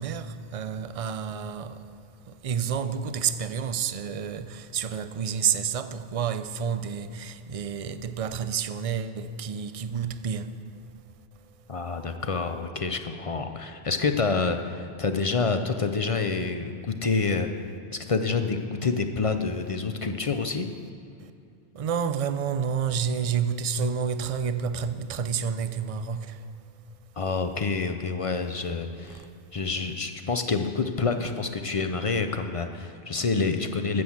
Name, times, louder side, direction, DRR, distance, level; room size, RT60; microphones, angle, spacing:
voice 1, 0.0-10.6 21.2-21.3 21.7-26.4 29.1-29.3, right 7 dB, 50° right, 0.4 m, -30 dB
voice 2, 11.7-17.5 17.9-20.7 27.2-29.3 29.5-34.0, left 4 dB, 45° left, 0.5 m, -27 dB
12.5 x 7.7 x 7.2 m
omnidirectional pair, 1.2 m